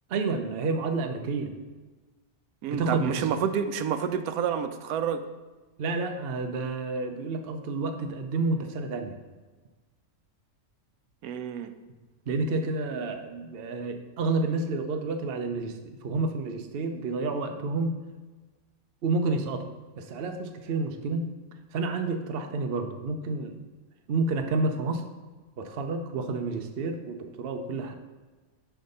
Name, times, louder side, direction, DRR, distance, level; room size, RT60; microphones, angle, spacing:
voice 1, 0.1-1.6 2.7-3.3 5.8-9.1 12.3-18.0 19.0-19.7 20.0-21.3 21.7-23.6 24.1-25.0 25.6-27.9, right 3 dB, 50° right, 5 dB, 0.8 m, -30 dB
voice 2, 2.6-5.2 11.2-11.7, right 8 dB, 85° right, 10 dB, 1.1 m, -29 dB
10.0 x 3.5 x 5.4 m, 1.3 s
omnidirectional pair, 1.5 m